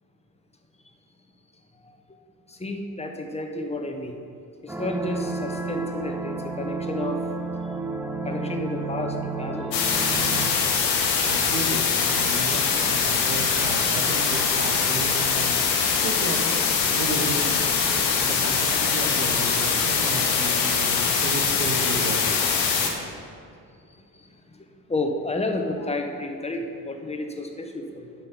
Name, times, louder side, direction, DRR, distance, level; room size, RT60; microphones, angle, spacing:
voice 1, 2.5-4.2 4.6-7.2 8.2-9.9 24.1-24.2 24.5-24.6 24.9-28.1, left 2 dB, 15° left, 4 dB, 1.1 m, -31 dB
sound 1, 4.7-10.5, right 3 dB, 5° right, 0.4 m, -31 dB
sound 2, 9.7-22.9, left 6 dB, 80° left, 0.9 m, -23 dB
voice 2, 11.3-15.6 16.0-16.5 16.9-17.7 18.2-22.3, right 3 dB, 80° right, 1 dB, 0.9 m, -33 dB
8.7 x 5.6 x 5.9 m, 2.3 s
figure-of-eight pair, 40°, 49 cm